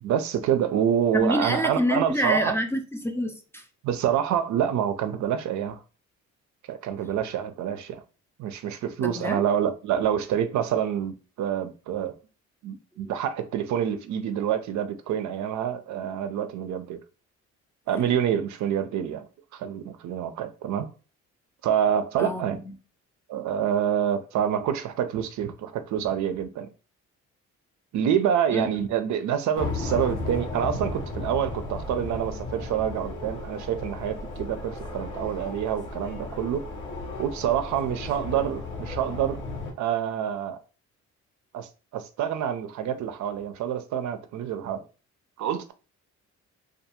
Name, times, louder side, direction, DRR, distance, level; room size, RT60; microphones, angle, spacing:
voice 1, 0.0-2.6 3.8-5.8 6.7-8.0 8.4-12.1 12.6-17.0 17.9-19.3 19.5-20.9 21.6-22.6 23.3-26.7 27.9-36.7 37.2-39.4 39.8-40.6 41.5-44.8 45.4-45.7, right 9 dB, 70° right, 0.4 m, -27 dB
voice 2, 1.1-3.6 9.0-9.4 13.0-13.1 22.2-22.7 28.5-28.7, equal, 10° left, 0.4 m, -27 dB
sound 1, 29.5-39.7, left 2 dB, 80° left, 0.8 m, -34 dB
2.4 x 2.3 x 2.8 m
cardioid pair, 90°, 30 cm